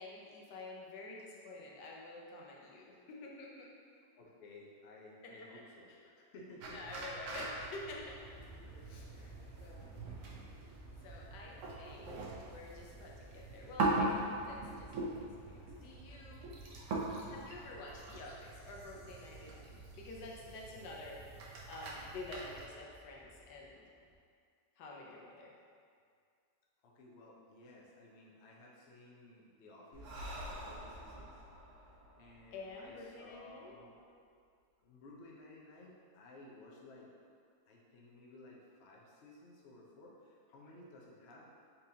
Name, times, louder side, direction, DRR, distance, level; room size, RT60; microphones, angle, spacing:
voice 1, 0.0-3.7 5.2-5.5 5.9-6.0 6.7-8.2 8.8-9.1 9.6-10.2 11.0-14.9 15.2-16.6 17.3-23.9 24.8-25.5 32.5-33.7, left 2 dB, 85° left, -2 dB, 1.3 m, -49 dB
voice 2, 4.2-7.1 8.6-8.9 9.1-9.4 26.8-30.2 30.6-31.4 32.2-34.4 34.8-37.1 37.7-41.5, left 2 dB, 60° left, -3 dB, 0.7 m, -56 dB
sound 1, 6.6-22.7, right 2 dB, 65° right, 0.8 m, -42 dB
Aircraft, 8.0-24.1, equal, 10° left, 0.5 m, -57 dB
Breathing, 29.9-33.5, equal, 85° right, 1.4 m, -48 dB
4.1 x 3.8 x 2.7 m, 2.2 s
omnidirectional pair, 1.8 m